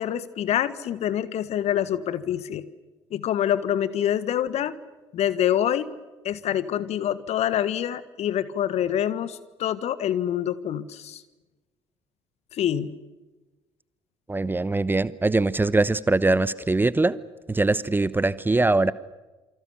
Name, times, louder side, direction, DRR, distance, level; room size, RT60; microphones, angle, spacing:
voice 1, 0.0-2.7 3.1-4.7 5.1-5.9 6.2-11.2 12.5-12.9, left 10 dB, 50° left, 15 dB, 1.6 m, -26 dB
voice 2, 14.3-17.2 17.5-18.9, right 2 dB, 15° right, 18 dB, 0.9 m, -22 dB
28.0 x 25.5 x 7.0 m, 1.2 s
figure-of-eight pair, 50°, 14 cm